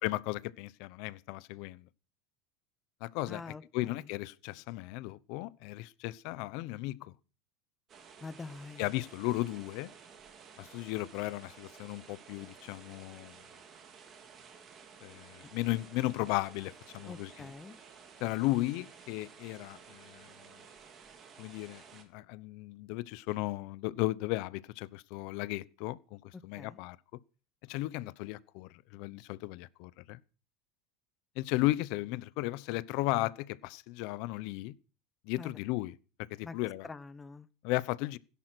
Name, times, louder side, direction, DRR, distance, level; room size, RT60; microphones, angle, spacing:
voice 1, 0.0-1.9 3.0-7.1 8.8-9.9 10.6-13.4 15.0-17.5 18.2-20.6 21.4-27.2 27.6-30.2 31.4-34.7 35.2-35.9 36.3-36.9 37.6-38.2, left 19 dB, 55° left, 0.8 m, -35 dB
voice 2, 3.3-4.1 8.2-8.9 17.1-17.8 26.6-26.8 35.4-35.6 36.4-36.5 36.8-37.5, left 4 dB, 15° left, 0.7 m, -45 dB
sound 1, 7.9-22.0, right 6 dB, 30° right, 3.1 m, -54 dB
16.5 x 11.0 x 6.1 m
supercardioid pair, 150°, 0 cm